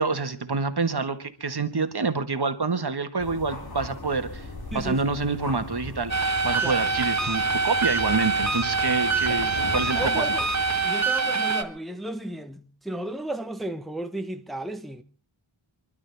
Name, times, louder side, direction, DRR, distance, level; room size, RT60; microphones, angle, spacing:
voice 1, 0.0-10.3, right 4 dB, 50° right, 1.6 m, -27 dB
sound 1, 3.2-10.9, left 2 dB, 45° left, 3.4 m, -40 dB
voice 2, 4.7-5.1 6.6-6.8 9.3-9.4 9.9-10.5 10.8-15.0, right 1 dB, ahead, 1.0 m, -34 dB
sound 2, 6.1-11.6, right 4 dB, 35° right, 1.5 m, -25 dB
sound 3, 7.8-10.6, left 2 dB, 70° left, 2.8 m, -39 dB
28.5 x 12.0 x 3.5 m
wide cardioid pair, 70°, 49 cm